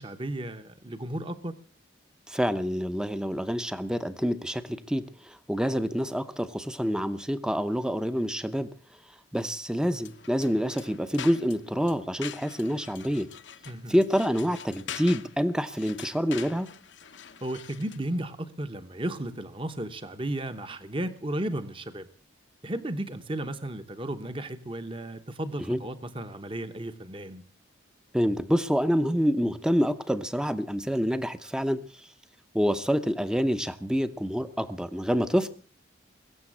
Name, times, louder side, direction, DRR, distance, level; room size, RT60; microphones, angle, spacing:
voice 1, 0.0-1.5 13.7-14.0 17.4-22.1 22.6-27.4, right 1 dB, 25° right, 1.0 m, -34 dB
voice 2, 2.3-8.7 9.3-13.3 13.9-16.7 25.7-25.8 28.1-32.1 32.5-35.5, equal, 5° right, 0.7 m, -27 dB
sound 1, 10.0-18.1, left 8 dB, 70° left, 1.0 m, -44 dB
22.0 x 7.6 x 8.6 m
head